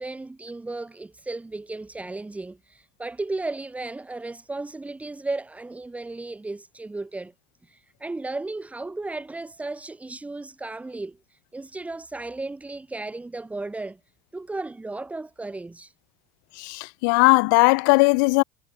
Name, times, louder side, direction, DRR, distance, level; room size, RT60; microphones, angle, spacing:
voice 1, 0.0-7.3 7.6-14.0 14.3-15.9, right 2 dB, 10° right, 3.6 m, -35 dB
voice 2, 16.6-18.4, left 31 dB, 65° left, 0.4 m, -18 dB
hypercardioid pair, 75°, 11 cm